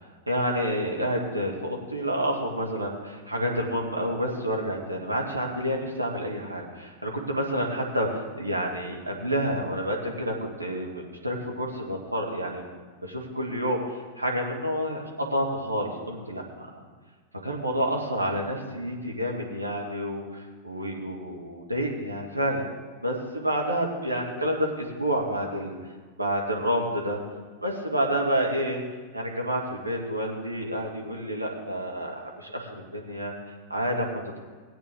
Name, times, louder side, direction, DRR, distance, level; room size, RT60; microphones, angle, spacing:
voice 1, 0.3-12.7 13.0-16.8 17.4-22.7 23.0-25.8 26.2-27.2 27.6-28.8 29.1-33.3 33.7-34.2, equal, 85° right, -1 dB, 1.9 m, -29 dB
17.5 x 8.7 x 3.7 m, 1.5 s
figure-of-eight pair, 90°, 0 cm